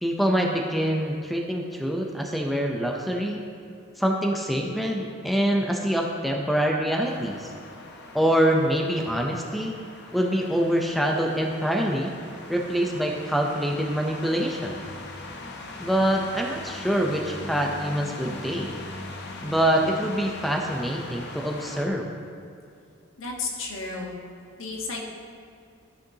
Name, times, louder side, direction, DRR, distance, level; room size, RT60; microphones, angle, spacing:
voice 1, 0.0-3.4 4.0-7.5 8.1-9.8 10.1-12.1 12.5-14.8 15.8-18.7 19.4-22.1, equal, ahead, 0 dB, 0.6 m, -25 dB
sound 1, 7.0-21.9, left 2 dB, 60° left, 0.8 m, -41 dB
voice 2, 23.2-24.1 24.6-25.0, left 3 dB, 80° left, -1 dB, 1.4 m, -32 dB
13.0 x 6.3 x 2.8 m, 2.5 s
head